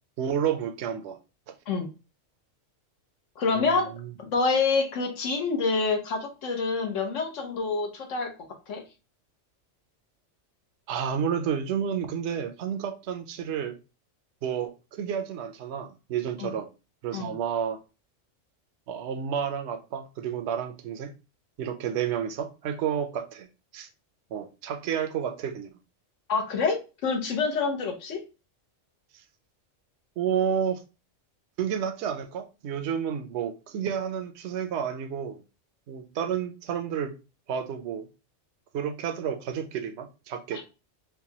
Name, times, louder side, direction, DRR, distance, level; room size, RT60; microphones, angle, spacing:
voice 1, 0.2-1.2 1.5-1.6 3.5-4.1 10.9-13.8 14.4-16.7 17.0-17.8 18.9-21.1 21.6-23.5 23.7-23.9 24.3-25.7 30.2-30.8 31.6-35.4 35.9-37.1 37.5-38.1 38.7-40.6, right 8 dB, 70° right, 0.8 m, -30 dB
voice 2, 3.4-3.9 4.2-8.3 8.7-8.8 16.4-16.5 17.1-17.3 26.3-28.2 40.5-40.6, left 4 dB, 75° left, 1.2 m, -27 dB
4.6 x 2.2 x 2.8 m
omnidirectional pair, 1.3 m